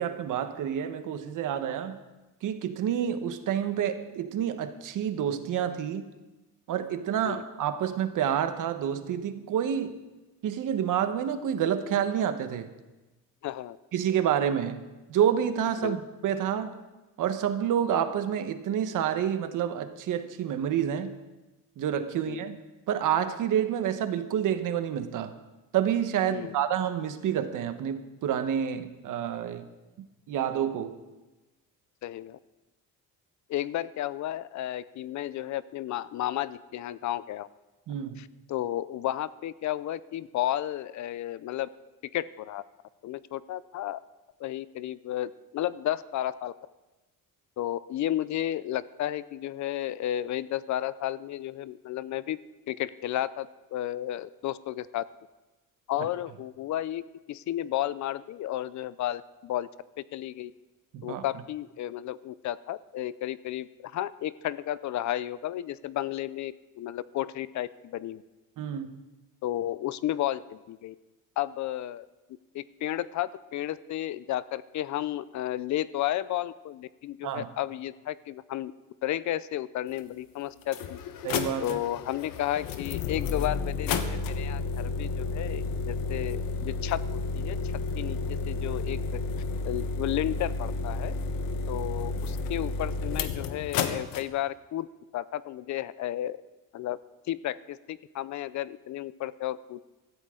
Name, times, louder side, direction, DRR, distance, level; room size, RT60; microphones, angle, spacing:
voice 1, 0.0-2.0 2.4-6.1 6.7-10.0 10.4-12.7 13.9-14.8 15.1-16.8 17.2-21.1 21.8-22.6 22.9-25.3 25.7-29.6 30.3-31.0 37.9-38.2 56.0-56.1 60.9-61.2 68.6-68.9 77.2-77.5 81.2-81.8, right 9 dB, 70° right, 9 dB, 1.2 m, -28 dB
voice 2, 13.4-13.8 15.8-16.0 22.3-22.4 26.3-26.5 32.0-32.4 33.5-37.5 38.2-41.7 42.1-42.6 43.0-44.0 44.4-46.5 47.6-52.4 52.7-55.0 55.9-57.0 57.3-59.7 60.1-60.5 61.0-68.2 69.4-70.9 71.4-72.0 72.5-78.7 79.0-81.0 81.6-87.0 87.3-87.6 88.0-89.0 89.6-91.1 91.7-94.9 95.1-96.4 96.7-97.0 97.3-99.8, left 13 dB, 60° left, 17 dB, 0.5 m, -32 dB
sound 1, 80.0-80.1 80.6-94.2, left 4 dB, 85° left, 1.2 m, -31 dB
16.5 x 14.0 x 3.8 m, 1.1 s
cardioid pair, 155°, 33 cm